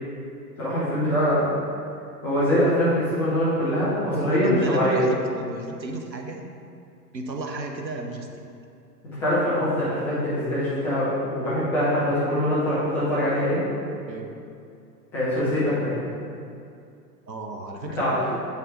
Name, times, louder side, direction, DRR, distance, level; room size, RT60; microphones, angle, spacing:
voice 1, 0.6-1.5 2.2-5.0 9.2-13.6 15.1-16.0 18.0-18.1, equal, 5° left, -13 dB, 0.4 m, -23 dB
voice 2, 4.1-6.4 7.1-8.3 14.1-14.3 17.3-18.4, right 2 dB, 90° right, 3 dB, 0.9 m, -32 dB
7.6 x 5.4 x 3.8 m, 2.5 s
figure-of-eight pair, 105°, 49 cm